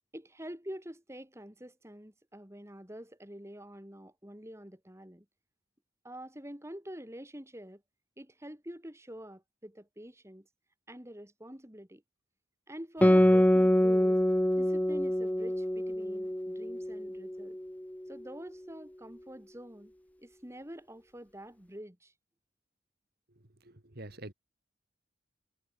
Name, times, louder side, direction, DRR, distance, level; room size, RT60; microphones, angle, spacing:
voice 1, 0.1-5.3 6.0-7.8 8.2-10.5 10.9-12.0 12.7-14.2 14.5-17.6 18.1-19.9 20.2-22.1, equal, 15° right, 2.4 m, -46 dB
Guitar, 13.0-17.9, equal, 5° left, 0.6 m, -25 dB
voice 2, 23.6-24.3, right 1 dB, 50° right, 2.0 m, -46 dB
head